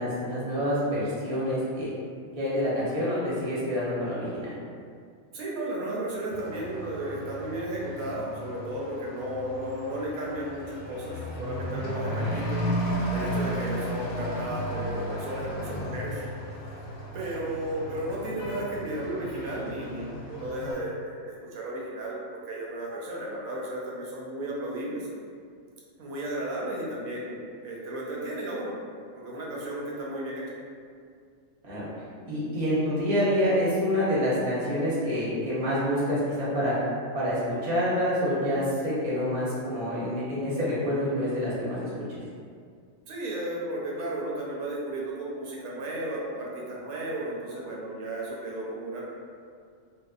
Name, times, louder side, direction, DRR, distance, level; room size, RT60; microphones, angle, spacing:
voice 1, 0.0-1.9 2.4-4.5 31.6-31.9 32.2-36.8 37.1-42.2, equal, 35° right, -9 dB, 0.7 m, -27 dB
voice 2, 5.3-12.6 13.1-16.7 17.1-25.1 26.0-28.7 29.1-30.4 43.1-49.0, right 1 dB, 85° right, -4 dB, 1.0 m, -34 dB
Truck / Accelerating revving vroom, 6.3-20.7, equal, 85° left, 1.0 m, -34 dB
2.7 x 2.1 x 2.3 m, 2.2 s
omnidirectional pair, 1.4 m